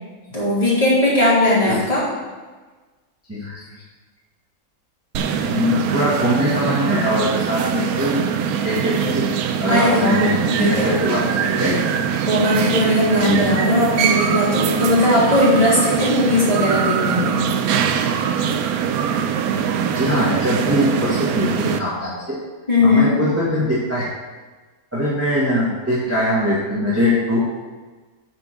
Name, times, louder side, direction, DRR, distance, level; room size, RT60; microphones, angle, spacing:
voice 1, 0.3-2.0 9.7-10.9 12.3-17.4 22.7-23.1, left 1 dB, 25° left, -8 dB, 3.4 m, -18 dB
sound 1, 5.1-21.8, right 7 dB, 90° right, 1.1 m, -22 dB
voice 2, 5.4-8.3 8.6-9.3 9.6-11.8 13.3-13.5 19.9-22.4 22.8-24.0 24.9-27.4, left 1 dB, 10° right, -7 dB, 1.7 m, -21 dB
9.4 x 4.5 x 6.4 m, 1.3 s
omnidirectional pair, 1.5 m